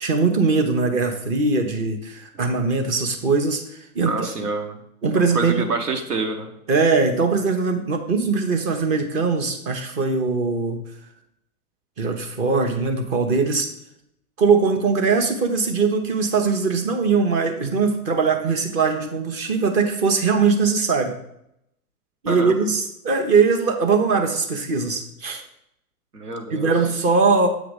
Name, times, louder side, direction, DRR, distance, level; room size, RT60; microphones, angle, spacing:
voice 1, 0.0-3.6 3.9-4.5 5.0-5.6 6.7-10.8 12.0-13.7 14.4-21.1 22.2-25.4 26.5-27.5, right 4 dB, 15° right, 5 dB, 0.4 m, -21 dB
voice 2, 4.1-4.7 5.3-6.5 22.3-22.5 26.1-26.7, right 3 dB, 85° right, 4 dB, 1.2 m, -27 dB
7.9 x 2.9 x 5.0 m, 0.77 s
figure-of-eight pair, 110°, 45 cm